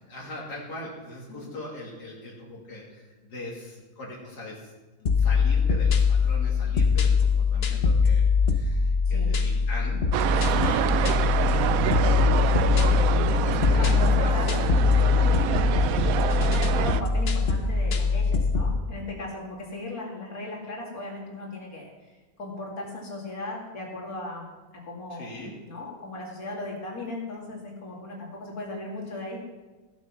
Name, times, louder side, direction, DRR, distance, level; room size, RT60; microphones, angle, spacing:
voice 1, 0.1-4.6 5.0-10.8 11.4-11.7 12.0-12.7 13.7-14.4 25.1-25.5, left 1 dB, 85° left, -4 dB, 3.0 m, -40 dB
sound 1, 5.1-18.8, left 5 dB, 45° left, 1.1 m, -22 dB
sound 2, 10.1-17.0, right 11 dB, 70° right, 0.9 m, -26 dB
voice 2, 10.5-10.8 13.1-24.5 24.8-29.4, left 2 dB, 65° left, -3 dB, 3.1 m, -38 dB
16.0 x 8.3 x 5.9 m, 1.2 s
omnidirectional pair, 1.7 m